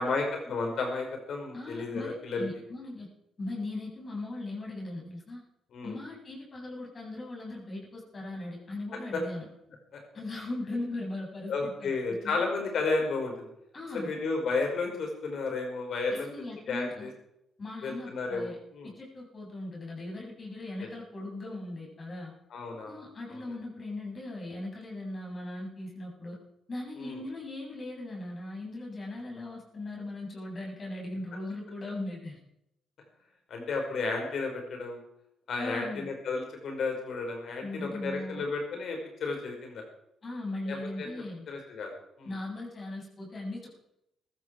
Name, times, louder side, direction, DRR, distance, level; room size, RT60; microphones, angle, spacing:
voice 1, 0.0-2.5 5.7-6.0 9.9-10.0 11.5-13.5 13.9-16.3 16.7-17.1 17.8-18.9 22.5-23.0 23.3-23.6 27.0-27.2 33.5-35.0 35.5-39.8 40.7-41.1 41.5-41.9 42.2-42.3, left 3 dB, 65° left, 2 dB, 5.3 m, -32 dB
voice 2, 1.5-3.1 3.4-5.4 5.8-9.5 10.1-11.9 12.2-12.4 13.7-14.1 16.2-17.1 17.6-18.6 18.8-22.3 22.9-26.4 26.7-32.4 35.6-36.1 37.6-38.4 40.2-41.4 42.2-43.7, left 2 dB, 40° left, -2 dB, 8.0 m, -39 dB
16.5 x 13.5 x 4.8 m, 0.82 s
supercardioid pair, 55°, 0 cm